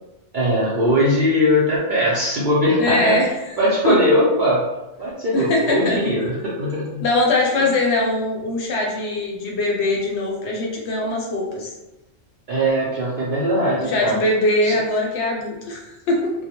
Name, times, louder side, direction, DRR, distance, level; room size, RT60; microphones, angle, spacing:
voice 1, 0.3-3.2 3.6-4.7 5.0-7.0 7.6-7.7 12.5-14.2 14.6-14.8, equal, 55° right, -6 dB, 0.5 m, -20 dB
voice 2, 2.8-3.3 3.8-4.0 5.3-6.0 7.0-11.7 13.7-16.3, left 2 dB, 70° left, -1 dB, 0.8 m, -21 dB
2.2 x 2.0 x 2.8 m, 0.96 s
omnidirectional pair, 1.3 m